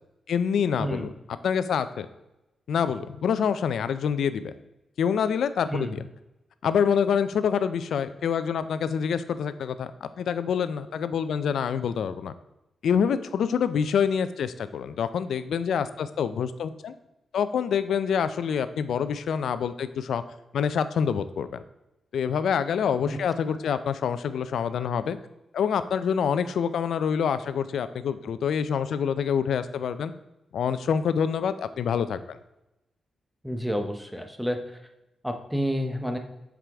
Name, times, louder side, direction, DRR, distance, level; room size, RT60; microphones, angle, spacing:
voice 1, 0.3-1.1 1.4-2.1 2.7-4.5 5.0-6.1 6.6-12.3 12.8-16.9 17.3-20.2 20.5-21.6 22.1-25.2 25.5-30.1 30.5-32.4, left 7 dB, 80° left, 12 dB, 0.4 m, -26 dB
voice 2, 5.7-6.0 23.1-23.2 33.4-34.6 35.2-36.2, equal, ahead, 5 dB, 0.7 m, -29 dB
7.5 x 4.8 x 3.4 m, 0.94 s
wide cardioid pair, 130°, 0 cm